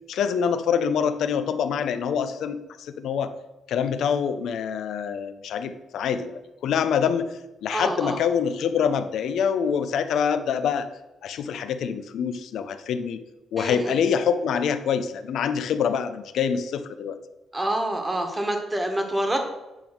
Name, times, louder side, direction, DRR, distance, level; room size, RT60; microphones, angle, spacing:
voice 1, 0.1-3.3 3.7-6.3 6.6-7.3 7.6-10.9 11.2-13.2 13.5-17.2, left 7 dB, 75° left, 10 dB, 0.6 m, -25 dB
voice 2, 7.7-8.2 13.6-14.0 17.5-19.4, right 1 dB, 15° right, 4 dB, 1.4 m, -27 dB
9.0 x 3.5 x 6.0 m, 1.0 s
cardioid pair, 90°, 0 cm